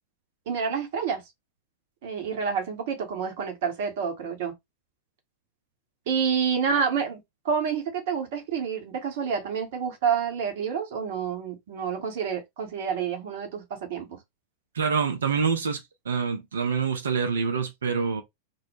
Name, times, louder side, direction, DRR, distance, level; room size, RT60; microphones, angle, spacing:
voice 1, 0.5-1.2 2.0-4.5 6.1-7.2 7.4-14.2, right 6 dB, 50° right, 0.8 m, -28 dB
voice 2, 14.7-18.2, right 5 dB, 70° right, 0.4 m, -26 dB
2.1 x 2.0 x 3.0 m
figure-of-eight pair, 90°, 0 cm